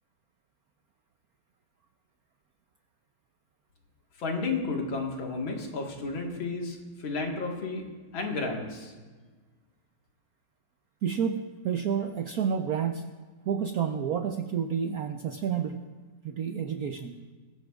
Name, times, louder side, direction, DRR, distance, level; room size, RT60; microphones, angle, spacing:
voice 1, 4.2-7.8 8.1-8.9, left 3 dB, 70° left, 1 dB, 2.4 m, -32 dB
voice 2, 11.0-13.1 13.4-15.8 16.2-17.2, right 7 dB, 70° right, 6 dB, 0.8 m, -30 dB
22.5 x 15.0 x 2.4 m, 1.4 s
omnidirectional pair, 2.3 m